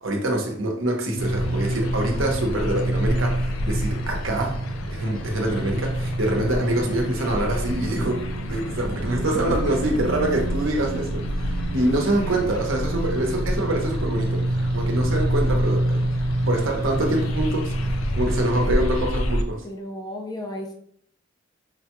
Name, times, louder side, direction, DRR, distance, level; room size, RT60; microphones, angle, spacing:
voice 1, 0.0-4.6 4.9-16.1 16.5-19.6, right 1 dB, 75° right, 1 dB, 0.9 m, -25 dB
sound 1, 1.1-18.7, right 1 dB, 50° right, 0.5 m, -28 dB
sound 2, 1.2-19.4, left 1 dB, 90° left, 0.4 m, -30 dB
voice 2, 19.6-20.7, left 1 dB, 20° left, 2 dB, 0.5 m, -35 dB
4.8 x 2.3 x 3.0 m, 0.66 s
head